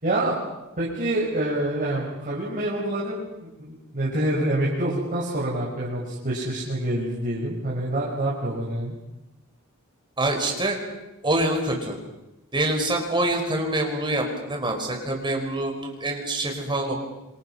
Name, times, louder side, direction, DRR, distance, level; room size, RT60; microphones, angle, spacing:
voice 1, 0.0-0.4 0.8-8.9, right 1 dB, 40° right, -6 dB, 5.6 m, -27 dB
voice 2, 10.2-10.8 11.2-12.0 12.5-16.9, right 1 dB, 20° right, 2 dB, 4.9 m, -25 dB
27.5 x 26.5 x 5.7 m, 0.96 s
head